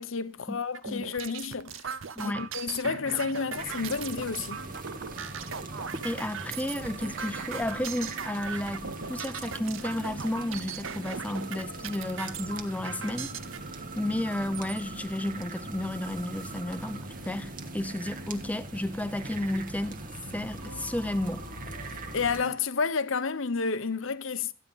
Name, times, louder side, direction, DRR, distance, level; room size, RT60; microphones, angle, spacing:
voice 1, 0.0-1.8 2.2-4.6 22.1-24.5, left 5 dB, 65° left, 0.8 m, -30 dB
sound 1, 0.7-13.6 14.3-14.8 15.4-15.5 15.8-16.4, right 6 dB, 65° right, 0.8 m, -39 dB
voice 2, 2.2-2.5 6.0-13.3 14.0-20.0 20.3-21.4, left 1 dB, 5° left, 0.7 m, -32 dB
sound 2, 2.8-22.6, right 1 dB, 85° right, 1.9 m, -47 dB
sound 3, 3.6-22.4, right 2 dB, 40° right, 1.4 m, -42 dB
14.5 x 9.4 x 5.6 m
head